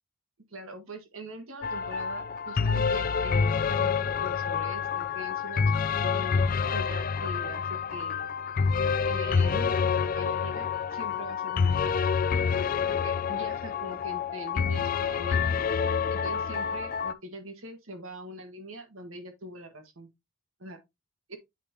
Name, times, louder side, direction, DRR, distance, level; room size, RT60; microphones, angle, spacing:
voice 1, 0.5-8.3 9.0-12.0 12.9-15.6 16.1-20.1 20.6-20.8 21.3-21.4, right 1 dB, 70° right, 1.6 m, -42 dB
sound 1, 1.6-17.1, left 6 dB, 40° left, 0.3 m, -27 dB
8.2 x 5.2 x 2.8 m
head